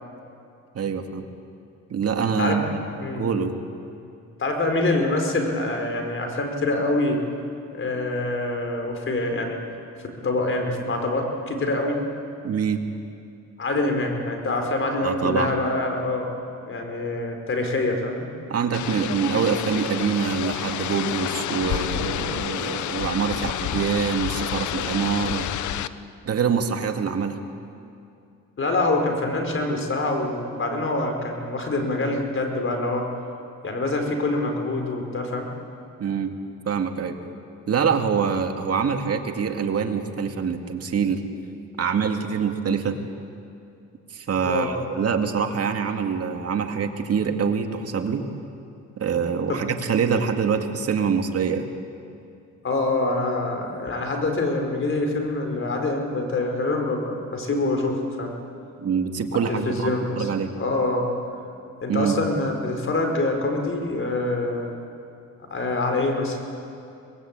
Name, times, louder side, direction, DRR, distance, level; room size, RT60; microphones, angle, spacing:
voice 1, 0.7-1.2 1.9-2.8 3.2-3.5 12.4-12.8 15.0-15.5 18.5-25.5 26.3-27.4 36.0-36.3 36.7-37.2 37.7-41.2 41.8-43.0 44.1-48.2 49.0-51.7 58.8-60.5 61.9-62.2, right 6 dB, 50° right, 4 dB, 2.3 m, -25 dB
voice 2, 4.4-7.2 7.7-9.6 10.2-12.0 13.6-16.3 16.7-18.3 28.6-33.0 33.6-35.5 44.4-44.7 49.5-49.6 49.8-49.9 52.6-58.3 59.5-61.1 61.8-64.7 65.5-66.4, left 2 dB, 45° left, 3 dB, 4.8 m, -25 dB
sound 1, 18.7-25.9, left 12 dB, 75° left, 0.8 m, -29 dB
24.0 x 20.0 x 8.9 m, 2.6 s
cardioid pair, 90°, 30 cm